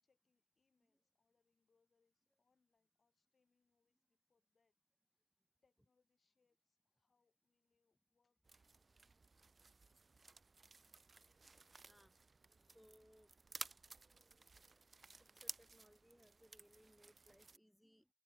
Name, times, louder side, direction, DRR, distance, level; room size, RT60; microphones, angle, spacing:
voice 1, 0.0-4.8 5.1-5.2 5.6-9.5, left 4 dB, 60° left, 7.2 m, -86 dB
sound 1, 8.4-17.6, right 4 dB, 45° right, 0.7 m, -56 dB
voice 2, 12.6-13.3 15.3-18.1, equal, ahead, 0.8 m, -68 dB
wide cardioid pair, 135°, 0 cm